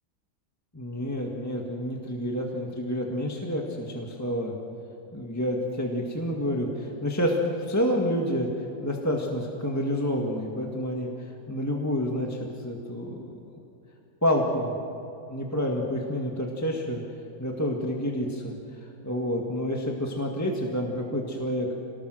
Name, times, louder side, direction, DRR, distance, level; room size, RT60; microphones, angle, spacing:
voice 1, 0.7-4.6 5.1-7.4 7.7-8.5 8.8-13.3 14.2-14.7 15.3-17.0 17.4-21.7, equal, 10° left, -1 dB, 1.7 m, -29 dB
27.0 x 19.5 x 6.4 m, 2.9 s
omnidirectional pair, 2.2 m